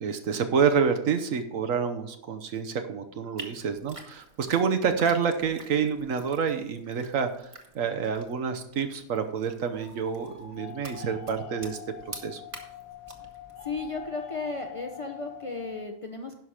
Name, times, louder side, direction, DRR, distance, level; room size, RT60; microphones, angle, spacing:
voice 1, 0.0-7.5 7.7-11.8 12.1-12.4, right 6 dB, 70° right, 7 dB, 1.3 m, -28 dB
sound 1, 3.4-14.2, right 2 dB, 25° right, 1.1 m, -49 dB
sound 2, 9.7-15.8, left 9 dB, 90° left, 1.6 m, -44 dB
voice 2, 13.6-16.4, left 3 dB, 30° left, 3 dB, 0.7 m, -34 dB
11.0 x 5.9 x 4.9 m, 0.73 s
omnidirectional pair, 1.4 m